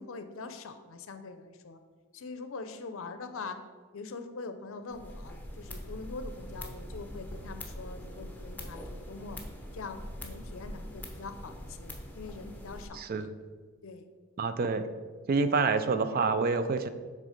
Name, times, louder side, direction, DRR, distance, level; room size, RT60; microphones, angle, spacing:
voice 1, 0.0-1.8 2.1-3.6 3.9-9.4 9.7-13.3 13.8-14.1, left 4 dB, 65° left, 9 dB, 0.5 m, -43 dB
sound 1, 4.9-12.9, left 1 dB, 10° left, 0.7 m, -43 dB
voice 2, 13.0-13.3 14.4-14.8 15.3-16.9, right 4 dB, 40° right, 11 dB, 0.3 m, -27 dB
6.4 x 3.8 x 5.0 m, 1.5 s
head